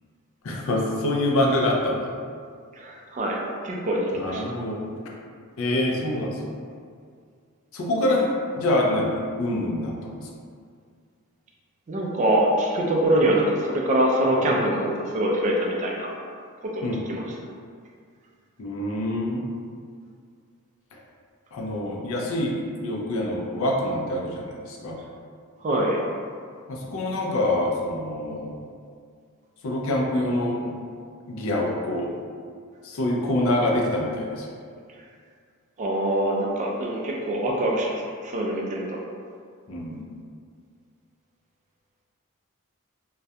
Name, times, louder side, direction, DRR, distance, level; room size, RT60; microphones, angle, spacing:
voice 1, 0.4-2.1 4.2-5.1 5.6-6.4 7.7-10.2 16.8-17.0 18.6-19.4 21.5-22.6 22.8-25.0 26.7-28.5 29.6-30.7 31.3-32.1 32.8-34.5 39.7-40.0, left 1 dB, 65° left, -1 dB, 0.4 m, -25 dB
voice 2, 2.7-4.5 11.9-16.1 16.7-17.2 25.6-26.0 35.8-39.0, right 1 dB, 35° right, -2 dB, 0.3 m, -24 dB
2.3 x 2.1 x 2.7 m, 2.1 s
head